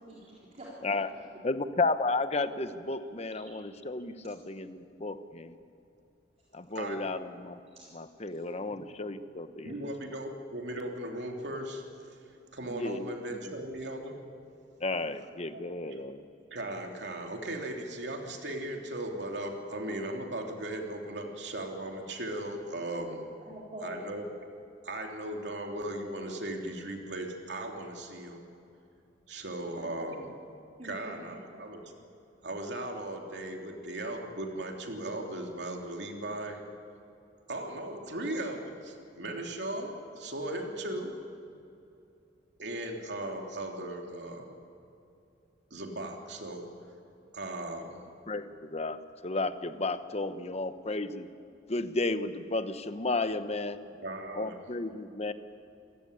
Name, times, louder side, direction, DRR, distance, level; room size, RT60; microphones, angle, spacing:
voice 1, 0.1-1.0 7.7-7.8 23.2-24.1 30.8-31.1, equal, 35° right, -6 dB, 3.9 m, -45 dB
voice 2, 1.4-5.5 6.5-7.6 7.9-9.9 12.7-13.1 13.4-13.5 14.8-16.2 48.3-51.3 51.7-53.8 54.3-55.3, left 3 dB, 35° left, 11 dB, 1.0 m, -33 dB
voice 3, 9.6-11.8 12.5-14.2 15.5-15.6 16.5-23.2 23.8-24.3 24.8-28.4 29.3-30.3 30.8-31.8 32.4-36.6 37.5-41.1 42.6-44.6 45.7-46.7 47.3-48.0 54.0-54.6, right 1 dB, 65° right, 2 dB, 3.2 m, -37 dB
28.0 x 15.5 x 10.0 m, 2.7 s
head